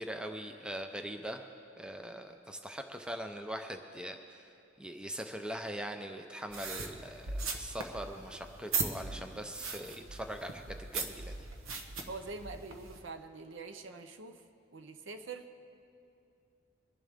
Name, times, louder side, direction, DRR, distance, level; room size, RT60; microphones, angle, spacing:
voice 1, 0.0-1.4 1.8-4.5 4.8-11.5, right 1 dB, 5° right, 5 dB, 0.4 m, -41 dB
sound 1, 6.5-13.0, right 4 dB, 90° right, 1.0 m, -39 dB
voice 2, 12.1-14.4 14.7-15.5, right 3 dB, 60° right, 8 dB, 0.7 m, -44 dB
23.0 x 11.0 x 3.5 m, 2.6 s
head